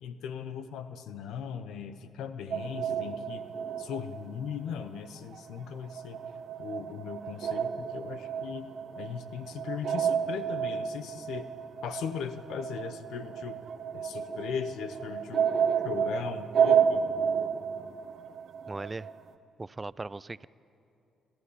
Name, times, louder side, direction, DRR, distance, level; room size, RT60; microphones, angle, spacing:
voice 1, 0.0-3.4 3.8-6.2 6.6-8.7 9.0-11.5 11.8-13.6 13.9-15.5 15.8-17.0, left 7 dB, 85° left, 10 dB, 1.0 m, -38 dB
sound 1, 2.5-5.1 5.3-19.2, right 7 dB, 60° right, 1.0 m, -31 dB
voice 2, 18.7-19.1 19.6-20.5, right 3 dB, 20° right, 19 dB, 0.4 m, -38 dB
25.0 x 14.5 x 9.9 m, 2.7 s
cardioid pair, 90°, 0 cm